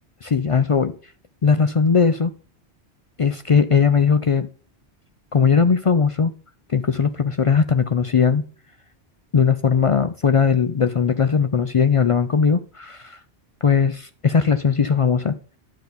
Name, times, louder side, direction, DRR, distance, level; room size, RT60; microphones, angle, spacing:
voice 1, 0.2-0.9 1.4-2.3 3.2-4.5 5.3-6.3 6.7-8.4 9.3-13.2 13.6-15.3, left 6 dB, 55° left, 11 dB, 0.3 m, -19 dB
10.5 x 7.0 x 4.0 m, 0.40 s
omnidirectional pair, 1.1 m